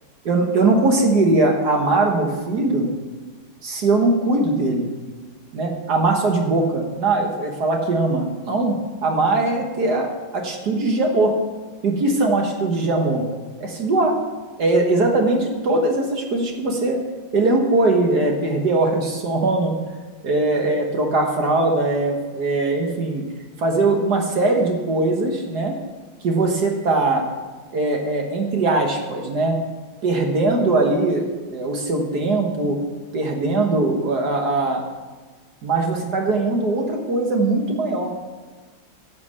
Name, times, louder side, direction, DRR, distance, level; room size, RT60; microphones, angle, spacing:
voice 1, 0.3-2.9 3.6-4.9 5.5-11.3 11.8-13.3 13.6-14.2 14.6-17.0 17.3-19.7 20.2-23.2 23.6-25.8 26.2-27.3 27.7-29.6 30.0-32.8 33.1-34.8 35.6-38.1, right 2 dB, 55° right, 2 dB, 1.8 m, -20 dB
11.5 x 6.5 x 7.5 m, 1.3 s
omnidirectional pair, 2.1 m